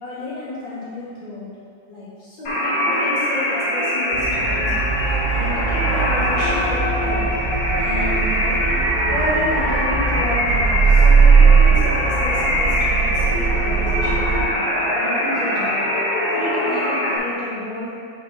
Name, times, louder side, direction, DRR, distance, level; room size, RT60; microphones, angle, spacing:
voice 1, 0.0-1.5 1.9-4.7 5.3-7.3 7.8-8.6 9.1-14.6 14.9-15.8 16.3-18.0, left 1 dB, 85° left, -9 dB, 2.8 m, -31 dB
sound 1, 2.5-17.2, left 1 dB, 70° left, 2.7 m, -22 dB
sound 2, 4.1-14.4, right 5 dB, 80° right, 0.4 m, -19 dB
5.8 x 5.0 x 5.1 m, 2.2 s
omnidirectional pair, 2.0 m